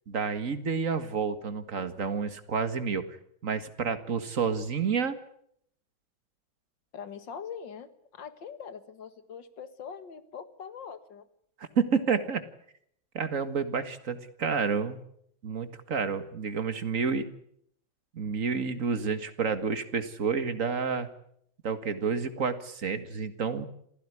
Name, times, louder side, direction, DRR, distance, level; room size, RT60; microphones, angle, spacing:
voice 1, 0.1-3.1 3.4-5.2 11.6-12.4 13.1-15.0 15.4-17.3 18.1-21.1 21.6-23.6, right 5 dB, 40° right, 10 dB, 2.0 m, -29 dB
voice 2, 6.9-11.3, left 7 dB, 65° left, 11 dB, 2.3 m, -42 dB
27.5 x 16.0 x 9.8 m, 0.70 s
omnidirectional pair, 2.2 m